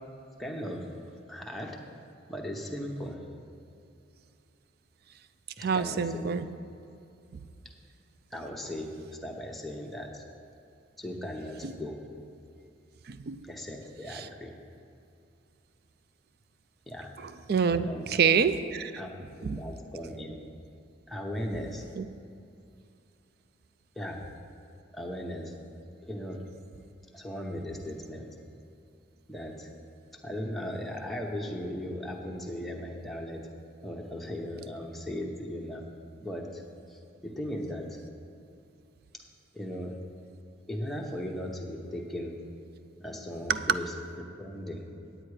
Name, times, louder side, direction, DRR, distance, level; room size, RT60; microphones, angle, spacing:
voice 1, 0.4-0.9 1.3-1.8 2.3-3.2 5.6-6.3 8.3-8.9 9.2-10.2 11.0-12.0 13.4-14.5 16.9-17.1 17.9-18.1 19.0-20.4 21.1-21.8 23.9-24.2 24.9-25.5 26.0-26.4 27.1-28.4 29.3-29.7 30.2-33.5 33.8-35.8 36.2-36.6 36.9-38.0 39.5-39.9 40.7-42.4 43.0-44.9, equal, ahead, -1 dB, 0.9 m, -37 dB
voice 2, 5.6-6.5 11.6-11.7 13.1-13.4 14.1-14.3 17.2-18.9 19.4-19.6 22.0-22.1 43.5-43.6, right 6 dB, 55° right, 12 dB, 0.4 m, -27 dB
9.8 x 8.8 x 4.8 m, 2.6 s
head